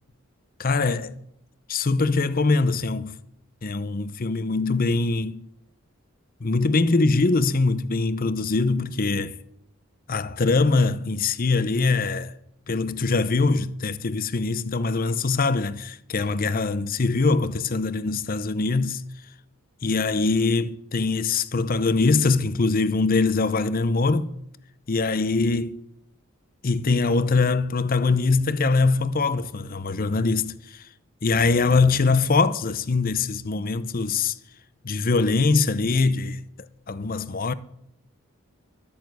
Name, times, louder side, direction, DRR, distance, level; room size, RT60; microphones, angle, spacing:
voice 1, 0.6-1.1 1.7-3.1 3.6-5.4 6.4-9.4 10.1-12.3 12.7-19.0 19.8-24.3 24.9-25.8 26.6-30.9 31.2-34.4 34.8-36.4 36.9-37.5, left 3 dB, 45° left, 0.7 m, -23 dB
13.0 x 8.8 x 7.9 m
head